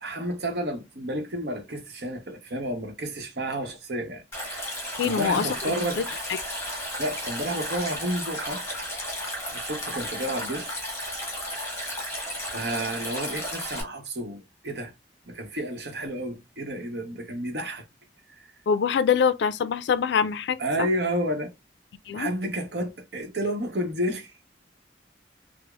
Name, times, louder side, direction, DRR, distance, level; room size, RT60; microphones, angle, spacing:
voice 1, 0.0-4.7 5.0-6.0 7.0-8.6 9.5-10.7 12.5-14.9 15.3-17.8 18.4-18.5 20.6-21.5 22.1-24.3, right 1 dB, 65° right, 0.9 m, -31 dB
Stream, 4.3-13.8, equal, 15° left, 1.5 m, -33 dB
voice 2, 5.0-5.5 6.0-6.1 18.7-20.9 22.1-22.3, left 6 dB, 75° left, 0.3 m, -24 dB
4.9 x 2.0 x 2.3 m
head